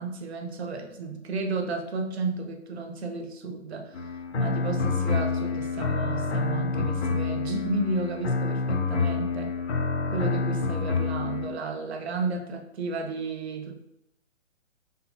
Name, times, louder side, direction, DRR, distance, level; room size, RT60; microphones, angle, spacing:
voice 1, 0.0-9.6 10.1-13.8, right 3 dB, 55° right, 4 dB, 0.7 m, -32 dB
sound 1, 3.9-11.5, left 4 dB, 60° left, 0.6 m, -28 dB
3.6 x 2.7 x 2.5 m, 0.82 s
hypercardioid pair, 145°, 38 cm